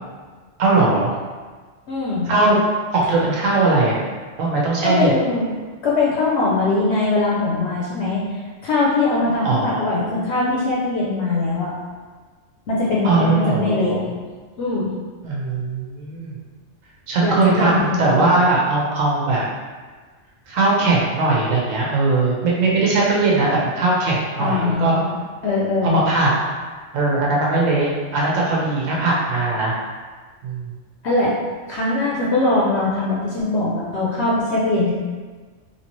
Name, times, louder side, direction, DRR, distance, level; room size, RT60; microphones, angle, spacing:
voice 1, 0.6-1.1 2.3-2.6 2.9-4.0 4.4-5.1 9.4-9.9 13.0-14.0 15.2-16.4 17.1-19.4 20.5-25.0 25.8-26.3 26.9-29.7 30.4-30.7, right 3 dB, 85° right, -4 dB, 1.1 m, -19 dB
voice 2, 1.9-2.3 4.8-5.5 5.8-11.7 12.7-14.0 14.6-14.9 17.2-18.0 24.4-25.1 25.4-26.0 31.0-31.3 31.7-34.9, left 3 dB, 65° left, -6 dB, 0.8 m, -21 dB
3.2 x 2.8 x 2.9 m, 1.4 s
omnidirectional pair, 1.3 m